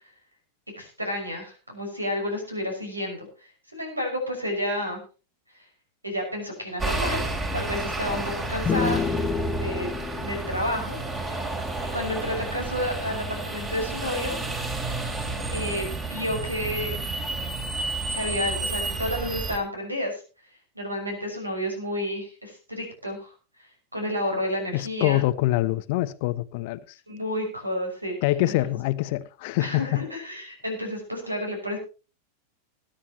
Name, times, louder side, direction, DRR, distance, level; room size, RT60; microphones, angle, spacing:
voice 1, 0.8-3.3 3.7-5.0 6.0-7.2 7.5-9.2 9.5-11.5 11.9-14.5 15.5-17.0 18.1-20.2 20.8-23.3 23.9-25.2 27.1-28.2 28.5-28.8 29.6-31.8, left 1 dB, 85° right, 5.8 m, -31 dB
sound 1, 6.8-19.6, right 3 dB, 20° right, 3.4 m, -31 dB
sound 2, 8.6-12.2, left 7 dB, 20° left, 1.1 m, -30 dB
voice 2, 24.7-27.0 28.2-30.0, left 16 dB, 50° left, 0.8 m, -25 dB
21.0 x 10.0 x 3.0 m
figure-of-eight pair, 90°, 0 cm